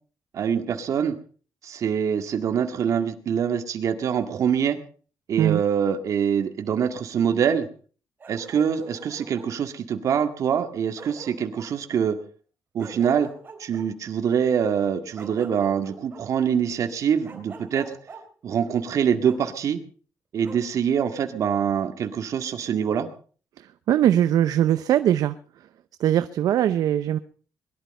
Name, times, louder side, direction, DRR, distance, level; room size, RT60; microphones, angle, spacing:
voice 1, 0.3-1.2 1.6-4.8 5.3-7.7 8.3-12.2 12.7-13.3 13.6-18.0 18.4-19.8 20.3-23.1, right 8 dB, 60° right, 7 dB, 2.0 m, -24 dB
Bark, 8.2-9.5 10.6-10.7 11.0-11.7 12.8-13.9 15.2-16.2 17.2-18.2 19.2-19.4 20.4-20.6, right 4 dB, 35° right, 3.8 m, -43 dB
voice 2, 23.6-25.4 26.0-27.2, right 11 dB, 75° right, 12 dB, 0.7 m, -21 dB
21.5 x 11.5 x 5.4 m, 0.43 s
cardioid pair, 140°, 6 cm